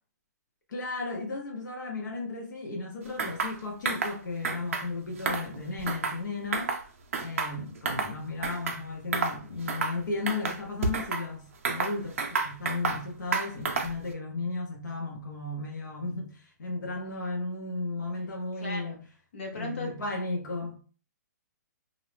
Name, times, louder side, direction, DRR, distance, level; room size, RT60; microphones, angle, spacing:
voice 1, 0.7-6.8 7.2-19.0 19.5-20.8, left 3 dB, 80° left, 0.7 m, -35 dB
sound 1, 3.2-3.5 3.8-4.1 4.4-4.9 5.2-6.2 6.5-6.8 7.1-8.1 8.4-8.8 9.1-9.4 9.7-10.0 10.3-11.2 11.6-13.0 13.3-14.0, right 4 dB, 45° right, 0.4 m, -30 dB
voice 2, 18.6-19.0 19.3-19.9, left 2 dB, 40° left, 0.7 m, -36 dB
2.5 x 2.0 x 3.1 m
hypercardioid pair, 180°, 10 cm